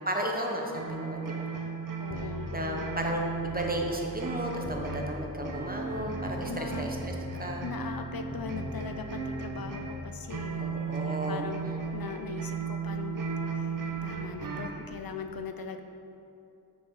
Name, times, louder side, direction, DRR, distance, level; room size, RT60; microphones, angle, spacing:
voice 1, 0.1-1.5 2.5-7.7 10.6-11.4, right 1 dB, 25° right, 1 dB, 0.8 m, -34 dB
sound 1, 0.7-14.8, right 5 dB, 55° right, 0.7 m, -36 dB
voice 2, 2.0-2.9 6.5-6.9 7.6-13.2 13.6-13.7 14.0-15.8, left 6 dB, 65° left, 7 dB, 0.5 m, -40 dB
sound 2, 2.1-13.5 13.9-15.0, left 3 dB, 25° left, 0.7 m, -44 dB
6.1 x 4.8 x 5.1 m, 2.7 s
wide cardioid pair, 80°, 39 cm